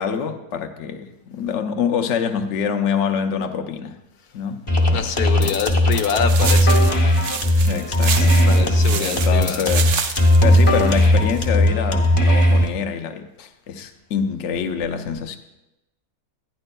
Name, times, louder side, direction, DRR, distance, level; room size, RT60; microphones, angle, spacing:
voice 1, 0.0-4.0 4.3-5.6 7.5-15.4, left 7 dB, 60° left, 0.9 m, -26 dB
sound 1, 4.7-12.7, left 1 dB, 25° left, 0.8 m, -17 dB
voice 2, 4.9-7.0 7.5-7.7 8.2-9.7, left 6 dB, 85° left, 1.3 m, -26 dB
sound 2, 6.3-11.5, right 7 dB, 60° right, 0.7 m, -29 dB
12.5 x 9.8 x 2.2 m
omnidirectional pair, 1.6 m